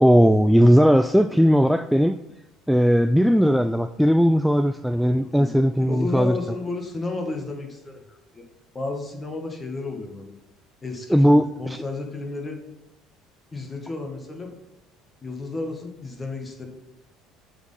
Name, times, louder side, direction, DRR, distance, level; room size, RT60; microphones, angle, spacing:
voice 1, 0.0-2.2 2.7-6.4 11.1-11.8, equal, ahead, 9 dB, 0.3 m, -18 dB
voice 2, 5.3-8.5 8.7-10.3 10.8-12.6 13.5-14.5 15.2-16.7, left 3 dB, 25° left, 2 dB, 1.7 m, -32 dB
6.8 x 4.4 x 5.7 m, 0.91 s
hypercardioid pair, 60°, 0 cm